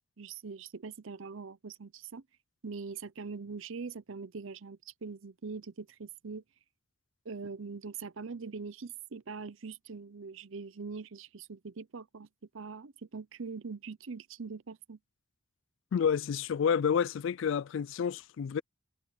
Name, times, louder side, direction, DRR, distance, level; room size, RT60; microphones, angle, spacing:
voice 1, 0.2-2.2 2.6-6.4 7.2-12.3 12.5-15.0, right 4 dB, 65° right, 0.7 m, -42 dB
voice 2, 15.9-18.6, left 7 dB, 60° left, 0.3 m, -29 dB
head